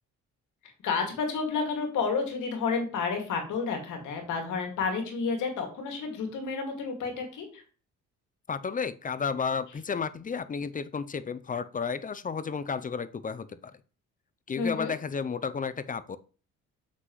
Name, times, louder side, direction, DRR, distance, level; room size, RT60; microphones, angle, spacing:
voice 1, 0.8-7.6 14.6-14.9, left 5 dB, 80° left, 3 dB, 2.3 m, -30 dB
voice 2, 8.5-13.7 14.5-16.2, left 5 dB, 30° left, 15 dB, 0.5 m, -32 dB
7.5 x 6.2 x 3.1 m, 0.38 s
cardioid pair, 90°, 30 cm